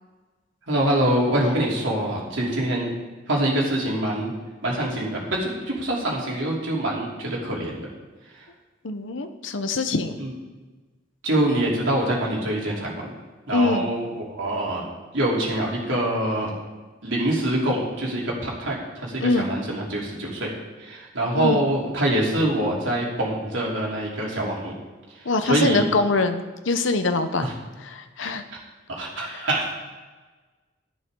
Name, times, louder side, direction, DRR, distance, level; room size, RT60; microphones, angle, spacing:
voice 1, 0.7-2.9 3.3-4.3 4.6-7.9 8.4-8.5 10.2-10.3 11.2-13.1 13.5-14.8 15.1-16.5 17.0-20.5 20.8-24.8 25.4-25.8 27.4-27.5 28.2-28.3 28.9-29.7, right 1 dB, 85° right, -3 dB, 3.2 m, -25 dB
voice 2, 8.8-10.2 13.5-13.9 19.2-19.5 21.4-21.6 25.2-27.4 27.8-28.4 29.3-29.5, left 3 dB, 80° left, 8 dB, 0.8 m, -24 dB
12.5 x 11.0 x 3.8 m, 1.3 s
head